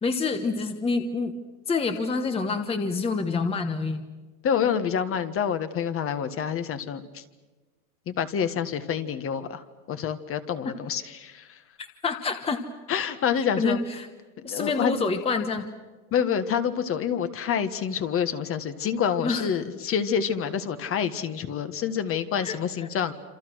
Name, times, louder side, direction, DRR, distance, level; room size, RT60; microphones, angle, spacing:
voice 1, 0.0-1.3 1.7-4.0 11.8-12.6 13.6-14.1 14.4-15.7 19.2-19.5 22.4-22.6, left 4 dB, 15° left, 7 dB, 1.3 m, -27 dB
voice 2, 4.4-7.2 8.1-11.6 12.9-13.8 14.4-15.0 16.1-23.1, left 8 dB, 30° left, 10 dB, 1.6 m, -27 dB
27.5 x 27.0 x 6.4 m, 1.3 s
supercardioid pair, 140°, 45 cm